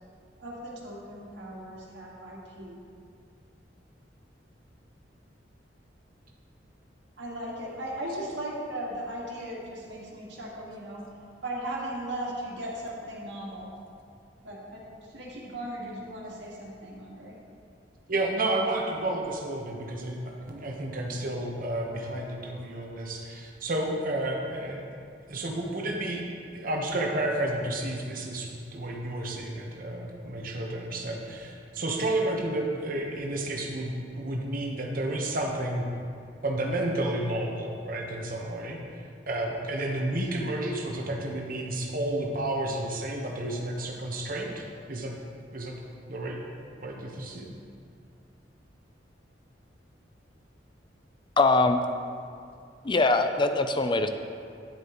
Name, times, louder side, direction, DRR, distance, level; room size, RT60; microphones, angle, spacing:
voice 1, 0.4-2.8 7.2-11.0 11.4-13.7 14.4-14.8 15.1-17.4, right 1 dB, 75° right, -4 dB, 1.8 m, -37 dB
voice 2, 18.1-24.9 25.3-26.2 26.5-35.9 36.4-38.8 39.3-44.6 44.9-45.1 45.5-45.7 46.1-46.4 46.8-47.5, right 1 dB, 50° right, 0 dB, 1.1 m, -31 dB
voice 3, 51.4-51.8 52.8-54.1, left 3 dB, 25° left, 7 dB, 0.4 m, -22 dB
10.0 x 8.1 x 3.0 m, 2.4 s
head